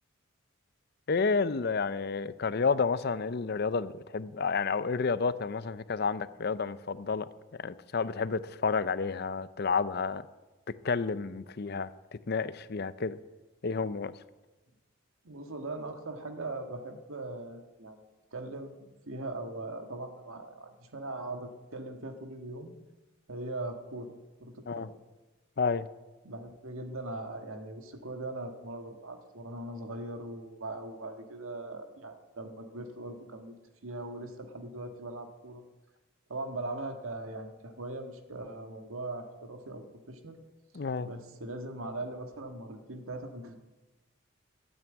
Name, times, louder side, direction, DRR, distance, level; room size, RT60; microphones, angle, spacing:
voice 1, 1.1-7.3 7.6-10.2 10.8-11.9 12.3-13.2 13.6-14.1 24.7-24.9 25.6-25.9 40.7-41.1, left 4 dB, 50° left, 15 dB, 0.5 m, -30 dB
voice 2, 15.2-18.0 18.3-22.7 23.3-24.1 24.4-25.0 26.2-33.6 33.8-35.6 36.3-40.4 41.0-43.5, right 2 dB, 85° right, 5 dB, 1.7 m, -40 dB
12.5 x 8.9 x 9.0 m, 1.1 s
head